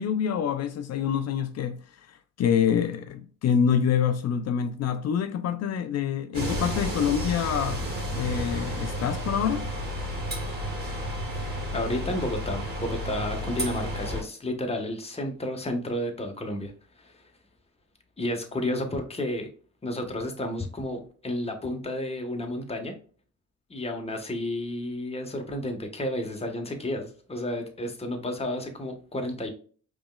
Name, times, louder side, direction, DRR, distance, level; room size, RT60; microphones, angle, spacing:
voice 1, 0.0-7.8 8.1-9.7, left 8 dB, 55° left, 0.5 m, -26 dB
sound 1, 6.3-14.2, equal, 35° right, 2.0 m, -31 dB
voice 2, 11.7-16.7 17.0-17.1 18.2-19.5 19.8-22.9 23.7-29.5, left 1 dB, 20° left, 1.2 m, -31 dB
5.0 x 3.1 x 2.2 m
cardioid pair, 90°, 30 cm